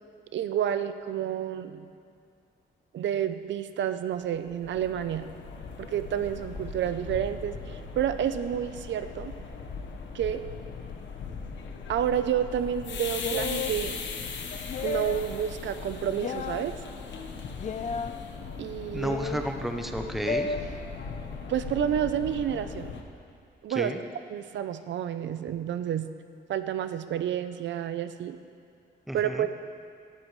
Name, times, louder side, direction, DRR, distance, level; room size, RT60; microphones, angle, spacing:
voice 1, 0.3-1.9 2.9-5.3 5.8-9.3 10.1-10.4 11.9-13.9 14.8-16.7 18.6-19.2 21.5-22.9 23.6-23.9 24.3-26.1 26.5-28.4 29.1-29.5, right 10 dB, 75° right, 10 dB, 0.6 m, -29 dB
sound 1, 4.3-23.0, left 5 dB, 80° left, 1.2 m, -39 dB
sound 2, 13.2-13.8 14.7-15.3 16.2-16.6 17.6-18.1 19.0-19.5 20.3-20.6, left 5 dB, 40° left, 0.5 m, -32 dB
voice 2, 18.9-20.6 23.8-24.0 29.1-29.5, right 1 dB, ahead, 4 dB, 0.6 m, -32 dB
18.5 x 13.0 x 3.2 m, 2.3 s
wide cardioid pair, 170°, 19 cm